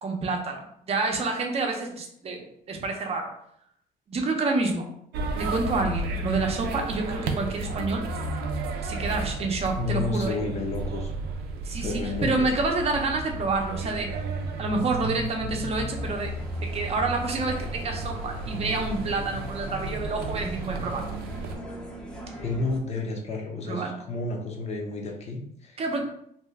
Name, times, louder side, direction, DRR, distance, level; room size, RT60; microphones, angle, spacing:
voice 1, 0.0-3.3 4.1-4.9 5.4-8.0 8.8-10.4 11.6-14.1 14.6-16.3 16.6-21.1 22.3-22.4 23.6-24.0 25.8-26.0, right 3 dB, 35° right, 2 dB, 0.7 m, -28 dB
sound 1, 5.1-21.5, right 3 dB, 75° right, 0.5 m, -33 dB
voice 2, 9.8-11.1 11.7-12.5 22.4-26.0, left 3 dB, 40° left, 1 dB, 0.7 m, -31 dB
sound 2, 15.9-22.8, right 1 dB, 5° left, 0.6 m, -40 dB
2.7 x 2.1 x 3.3 m, 0.70 s
cardioid pair, 110°, 17 cm